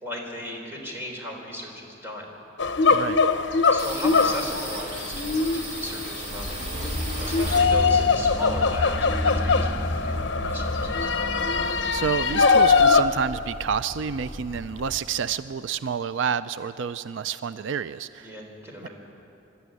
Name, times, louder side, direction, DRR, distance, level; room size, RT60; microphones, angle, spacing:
voice 1, 0.0-2.3 3.7-11.1 18.2-18.9, left 1 dB, 15° right, -1 dB, 3.7 m, -36 dB
sound 1, 2.6-13.0, left 4 dB, 65° left, 0.9 m, -22 dB
voice 2, 2.9-3.2 11.9-18.4 18.8-18.9, right 6 dB, 80° right, 14 dB, 0.4 m, -29 dB
sound 2, 3.8-8.1 8.5-9.8 10.1-10.2 10.5-11.2, right 1 dB, 35° right, 3.3 m, -36 dB
sound 3, 6.3-15.0, left 1 dB, 30° left, 1.6 m, -32 dB
24.5 x 12.5 x 9.7 m, 2.8 s
head